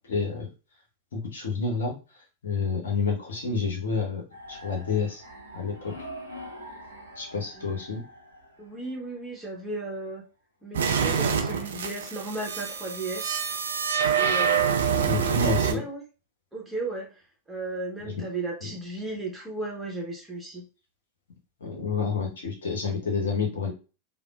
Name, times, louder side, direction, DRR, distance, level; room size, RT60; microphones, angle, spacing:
voice 1, 0.1-0.5 1.1-2.0 2.4-5.2 5.5-6.0 7.2-8.0 15.0-15.8 18.0-18.2 18.6-18.7 21.6-23.7, left 4 dB, 65° left, 1 dB, 0.8 m, -29 dB
sound 1, 4.3-9.2, equal, 85° right, 0.8 m, -44 dB
voice 2, 8.6-10.2 10.6-13.4 14.2-16.0 16.5-20.6, right 2 dB, 5° right, -2 dB, 1.1 m, -35 dB
sound 2, 10.7-15.7, right 7 dB, 65° right, 0.4 m, -26 dB
3.4 x 2.1 x 2.4 m, 0.32 s
figure-of-eight pair, 90°, 0 cm